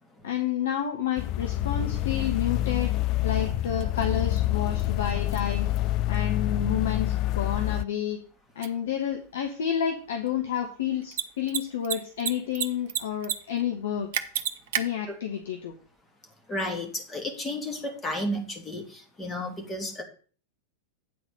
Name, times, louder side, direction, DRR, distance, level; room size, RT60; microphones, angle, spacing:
voice 1, 0.2-2.9 3.2-5.7 6.1-8.2 8.5-14.1 14.8-15.8, left 9 dB, 60° left, 4 dB, 1.0 m, -30 dB
sound 1, 1.2-7.8, left 14 dB, 40° left, 0.3 m, -27 dB
Mechanisms, 8.6-8.7 11.0-11.2 11.5-11.6 11.8-12.6 12.9-13.3 13.6-13.7 14.1-14.8, right 10 dB, 55° right, 0.8 m, -27 dB
voice 2, 16.5-20.0, left 1 dB, 20° left, 2 dB, 2.2 m, -32 dB
9.0 x 4.1 x 6.8 m, 0.41 s
figure-of-eight pair, 90°, 0 cm